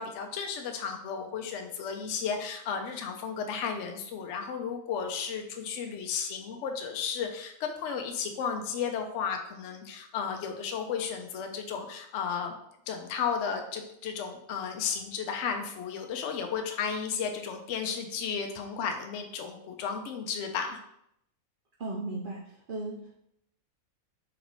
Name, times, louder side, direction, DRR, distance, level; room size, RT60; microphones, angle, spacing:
voice 1, 0.0-12.5 12.9-20.8, left 6 dB, 65° left, 4 dB, 0.8 m, -34 dB
voice 2, 21.8-23.2, right 2 dB, 80° right, -2 dB, 0.4 m, -36 dB
3.9 x 3.0 x 3.0 m, 0.75 s
omnidirectional pair, 1.5 m